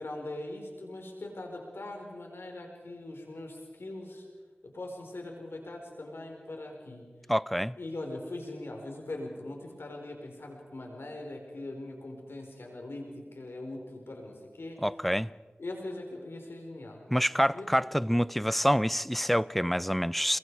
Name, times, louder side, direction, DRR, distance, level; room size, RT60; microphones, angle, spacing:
voice 1, 0.0-4.3 4.7-7.1 7.8-14.8 15.6-17.0 17.5-17.7, left 2 dB, 90° left, 4.7 m, -41 dB
voice 2, 7.3-7.8 14.8-15.3 17.1-20.4, equal, 5° left, 0.6 m, -27 dB
29.5 x 23.0 x 4.9 m
wide cardioid pair, 40°, 4 cm